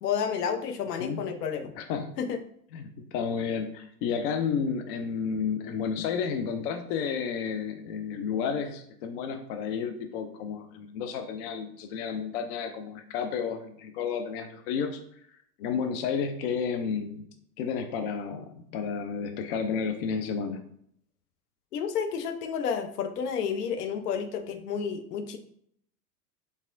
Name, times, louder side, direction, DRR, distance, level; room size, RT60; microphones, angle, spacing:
voice 1, 0.0-1.7 2.2-2.4 21.7-25.4, left 7 dB, 70° left, 7 dB, 0.8 m, -30 dB
voice 2, 1.8-2.1 2.7-15.0 15.6-17.2 17.6-20.6, left 6 dB, 40° left, 7 dB, 0.5 m, -31 dB
4.3 x 3.4 x 2.5 m, 0.68 s
hypercardioid pair, 105°, 50 cm